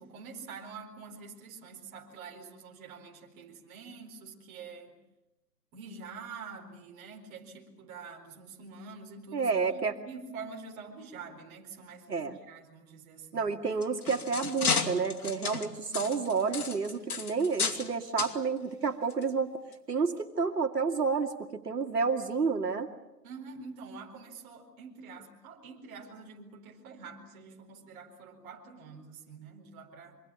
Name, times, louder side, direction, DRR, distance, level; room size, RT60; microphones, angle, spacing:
voice 1, 0.0-5.0 5.7-13.5 15.8-16.4 22.4-22.6 23.2-30.2, right 4 dB, 20° right, 1 dB, 4.3 m, -46 dB
voice 2, 9.3-10.0 12.1-12.4 13.3-19.5 19.9-22.9, right 5 dB, 70° right, 5 dB, 2.6 m, -30 dB
sound 1, 13.6-17.9 18.2-18.4 19.1-19.2 19.7-19.8, left 5 dB, 60° left, 3.3 m, -33 dB
26.5 x 25.5 x 8.6 m, 0.96 s
figure-of-eight pair, 145°, 49 cm